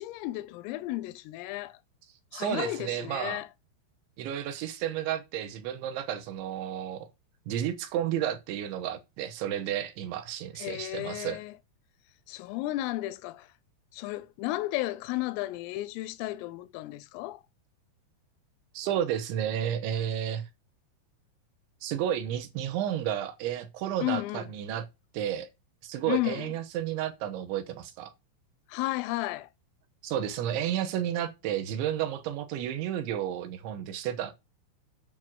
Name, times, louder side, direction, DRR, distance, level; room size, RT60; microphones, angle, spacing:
voice 1, 0.0-1.8 2.3-3.5 10.6-11.5 12.3-13.5 13.9-17.4 24.0-24.4 26.0-26.5 28.7-29.5, left 17 dB, 90° left, 3.4 m, -33 dB
voice 2, 2.3-3.4 4.2-7.1 7.5-11.4 18.7-20.5 21.8-24.8 25.1-25.5 25.8-28.1 30.0-34.3, right 10 dB, 75° right, 3.0 m, -32 dB
9.2 x 6.1 x 6.1 m
omnidirectional pair, 5.8 m